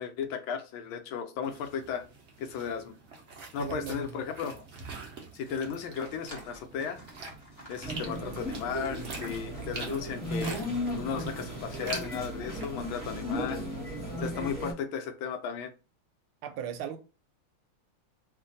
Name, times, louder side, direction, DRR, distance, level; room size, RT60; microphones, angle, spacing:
voice 1, 0.0-2.0 2.4-2.9 3.5-4.6 5.3-7.0 7.7-10.6 11.0-13.6 14.2-15.7, left 7 dB, 75° left, 1.3 m, -35 dB
sound 1, 1.4-12.7, right 3 dB, 60° right, 0.7 m, -44 dB
voice 2, 3.6-4.2 14.1-14.5 16.4-17.0, right 9 dB, 80° right, 1.4 m, -38 dB
sound 2, 5.4-11.6, equal, 30° left, 0.6 m, -54 dB
sound 3, 7.8-14.7, equal, 5° left, 1.0 m, -36 dB
3.3 x 2.5 x 3.8 m
omnidirectional pair, 2.4 m